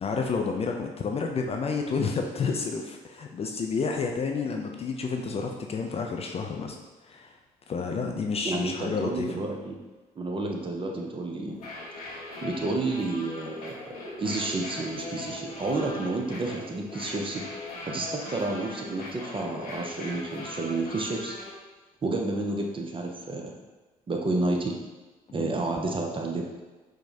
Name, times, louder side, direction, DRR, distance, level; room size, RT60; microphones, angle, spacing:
voice 1, 0.0-6.8 7.0-7.4 7.7-9.4 25.4-25.7, left 5 dB, 30° left, 2 dB, 0.4 m, -30 dB
voice 2, 8.4-9.7 10.2-11.6 12.4-13.8 14.2-17.4 17.9-21.4 22.0-23.5 24.1-24.7 25.3-26.4, right 2 dB, 25° right, 1 dB, 0.6 m, -30 dB
sound 1, 11.5-21.5, left 2 dB, 85° left, 0.6 m, -40 dB
4.6 x 2.1 x 2.7 m, 1.2 s
figure-of-eight pair, 45°, 19 cm